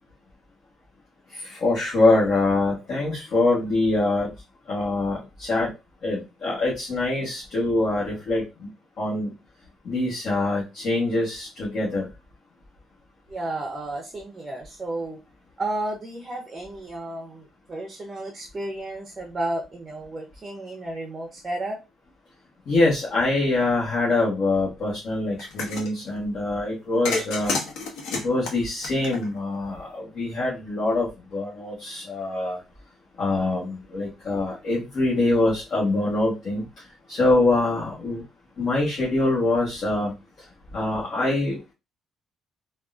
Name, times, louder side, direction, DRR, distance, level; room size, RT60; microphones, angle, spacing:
voice 1, 1.3-4.3 4.7-5.7 6.0-8.4 9.0-9.3 9.8-12.1 22.7-27.6 28.2-32.6 33.2-36.6 37.1-38.2 38.6-40.1 40.7-41.7, left 2 dB, 55° left, -7 dB, 1.2 m, -24 dB
voice 2, 13.3-15.2 15.6-21.8, right 1 dB, 25° right, 2 dB, 0.6 m, -32 dB
sound 1, 25.4-25.9 27.1-29.6, left 3 dB, 85° left, 0.8 m, -30 dB
3.5 x 2.3 x 2.4 m, 0.26 s
cardioid pair, 130°, 0 cm